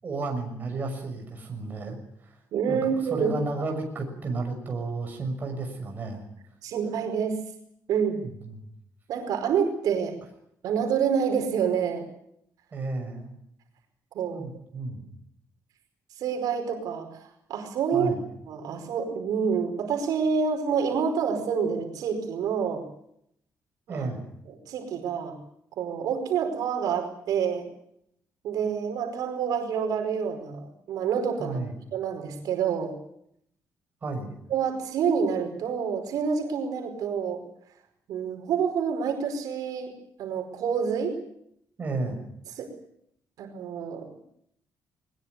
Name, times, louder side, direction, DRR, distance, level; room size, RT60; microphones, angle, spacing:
voice 1, 0.0-2.4 2.7-2.8 3.1-6.2 8.4-8.7 12.7-13.3 14.2-15.1 17.9-18.2 23.9-24.2 31.4-31.7 34.0-34.3 41.8-42.2, right 3 dB, 30° right, 3 dB, 6.3 m, -32 dB
voice 2, 2.5-3.3 6.6-7.4 7.9-8.2 9.1-10.1 10.6-12.0 14.1-14.5 16.2-18.1 18.5-22.8 23.9-24.1 24.4-25.4 25.8-27.7 28.4-31.6 31.9-32.9 34.5-37.4 38.1-41.2 42.6-42.7 43.4-44.1, right 6 dB, 80° right, 4 dB, 4.9 m, -27 dB
21.0 x 21.0 x 9.5 m, 0.74 s
cardioid pair, 175°, 6 cm